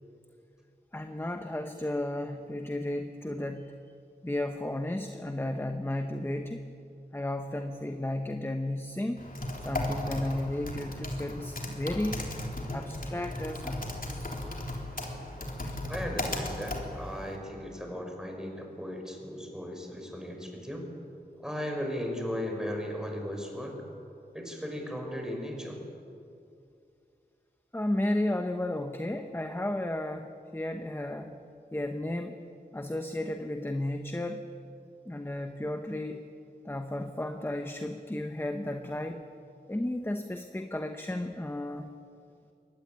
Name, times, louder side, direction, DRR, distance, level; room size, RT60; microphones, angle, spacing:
voice 1, 0.9-3.8 4.2-6.6 7.1-9.3 9.6-12.3 12.7-14.3 15.6-15.7 27.7-31.3 31.7-32.4 32.7-34.5 35.0-36.2 36.6-39.2 39.7-41.9, left 1 dB, 15° left, 6 dB, 1.2 m, -33 dB
Typing, 9.2-17.4, left 1 dB, 55° left, 3.6 m, -36 dB
voice 2, 15.9-20.8 21.4-23.8 24.3-25.8, equal, 5° right, 2 dB, 5.7 m, -36 dB
23.0 x 18.5 x 9.4 m, 2.5 s
wide cardioid pair, 75°, 17 cm